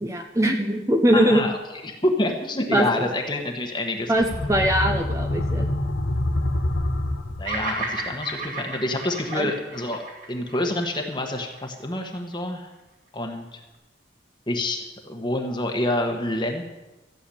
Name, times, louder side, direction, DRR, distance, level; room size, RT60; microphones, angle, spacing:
voice 1, 0.0-1.5 2.7-3.0 4.1-5.7 9.3-9.5, right 1 dB, 15° right, 3 dB, 0.8 m, -21 dB
voice 2, 1.1-1.6 1.8-4.5 7.4-10.0 10.3-12.7 13.1-13.6 14.5-16.6, left 1 dB, 25° left, 3 dB, 1.4 m, -27 dB
sound 1, 4.1-7.9, left 1 dB, 85° left, 1.3 m, -26 dB
Bird vocalization bird call bird song, 7.4-11.7, right 3 dB, 45° right, 2.7 m, -33 dB
14.5 x 7.1 x 8.5 m, 1.1 s
head